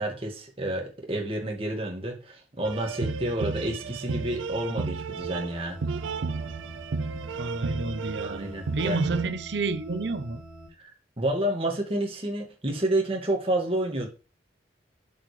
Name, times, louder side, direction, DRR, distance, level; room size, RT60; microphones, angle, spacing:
voice 1, 0.0-5.8 8.2-9.0 10.8-10.9 11.2-14.1, right 1 dB, 30° right, 1.9 m, -29 dB
sound 1, 2.6-9.3, right 4 dB, 90° right, 0.5 m, -33 dB
sound 2, 5.1-10.7, right 1 dB, 5° right, 2.0 m, -46 dB
voice 2, 7.4-8.5 8.7-10.4, right 3 dB, 65° right, 0.8 m, -29 dB
7.5 x 7.1 x 3.3 m
head